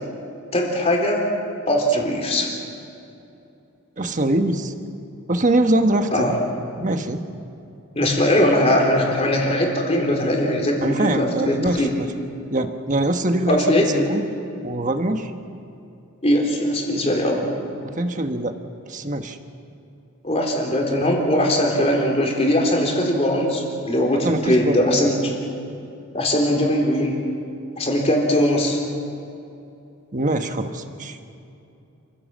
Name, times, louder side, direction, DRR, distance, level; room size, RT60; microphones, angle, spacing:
voice 1, 0.5-1.3 1.7-2.5 6.1-6.4 8.0-11.9 13.5-14.2 16.2-17.5 20.2-25.3 26.1-27.2 27.8-28.8, left 1 dB, 30° left, 0 dB, 3.8 m, -20 dB
voice 2, 4.0-4.7 5.3-6.3 6.8-7.2 10.8-12.1 12.5-14.3 14.6-15.3 17.8-18.5 18.9-19.4 24.2-25.1 30.1-31.3, right 1 dB, 35° right, 7 dB, 1.3 m, -23 dB
29.0 x 17.0 x 7.5 m, 2.7 s
head